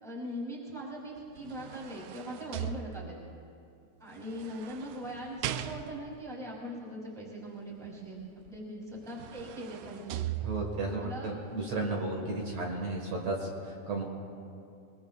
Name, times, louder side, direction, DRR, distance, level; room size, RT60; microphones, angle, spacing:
voice 1, 0.0-3.2 4.0-8.2 8.5-10.2 11.0-11.3, equal, ahead, -4 dB, 2.3 m, -41 dB
sound 1, 1.2-3.4 4.2-6.2 8.5-8.6 9.0-11.0 11.5-11.6, right 12 dB, 80° right, 1.9 m, -39 dB
voice 2, 10.4-14.0, right 2 dB, 60° right, -1 dB, 2.7 m, -34 dB
23.0 x 21.5 x 2.4 m, 2.5 s
omnidirectional pair, 3.7 m